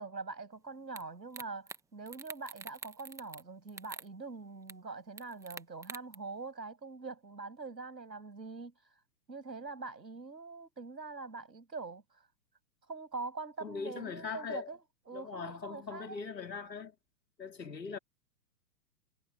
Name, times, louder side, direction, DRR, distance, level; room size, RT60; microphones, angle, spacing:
voice 1, 0.0-8.7 9.3-12.2 12.9-14.8 15.1-16.2, right 4 dB, 85° right, 7.7 m, -43 dB
sound 1, 1.0-1.1 1.3-1.8 2.1-3.4 3.7-4.1 4.7-4.8 5.2-6.1, right 4 dB, 5° right, 1.5 m, -45 dB
voice 2, 13.6-14.7 15.1-16.9 17.4-18.0, left 5 dB, 80° left, 3.0 m, -41 dB
figure-of-eight pair, 120°, 50 cm